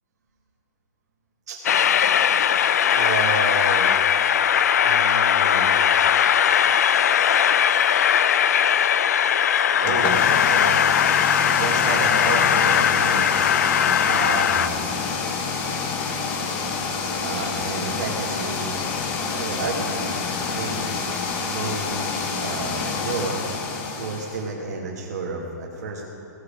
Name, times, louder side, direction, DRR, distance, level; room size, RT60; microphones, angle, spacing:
Train, 1.6-14.7, left 9 dB, 60° left, 0.4 m, -19 dB
voice 1, 2.9-4.0 4.8-5.8 9.7-10.9 11.4-13.3 14.0-14.7 17.2-18.7 19.3-20.2 20.5-21.2 21.4-22.1 22.3-23.4 24.0-26.1, right 3 dB, 60° right, -3 dB, 1.4 m, -30 dB
sound 1, 9.8-24.5, left 5 dB, 15° left, 0.6 m, -28 dB
16.5 x 6.7 x 5.0 m, 3.0 s
hypercardioid pair, 175°, 10 cm